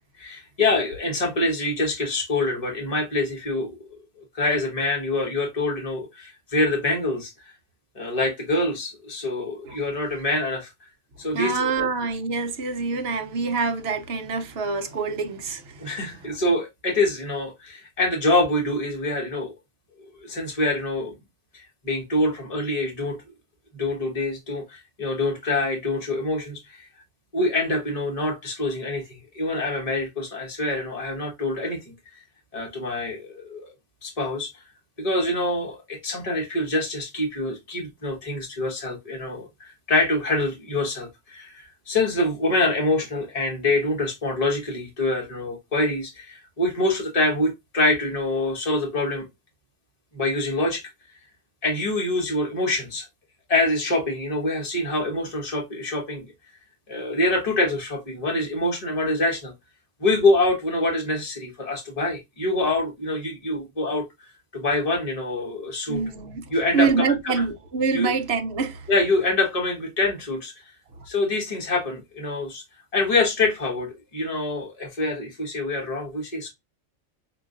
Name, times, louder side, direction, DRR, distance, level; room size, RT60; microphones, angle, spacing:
voice 1, 0.2-3.7 4.3-7.3 7.9-10.9 11.2-11.9 15.8-19.5 20.0-21.1 21.5-23.2 23.7-26.9 27.3-31.8 32.5-33.7 34.0-34.6 35.0-49.3 50.1-50.8 51.6-53.1 53.5-56.3 56.9-59.5 60.0-64.0 64.5-66.0 66.5-67.4 67.9-68.1 68.9-70.5 71.1-72.6 72.9-76.5, left 2 dB, 30° left, 1.5 m, -25 dB
voice 2, 11.3-15.9 16.2-16.3 65.9-68.9 71.0-71.1, right 4 dB, 55° right, 1.0 m, -26 dB
6.1 x 2.7 x 2.5 m
omnidirectional pair, 1.4 m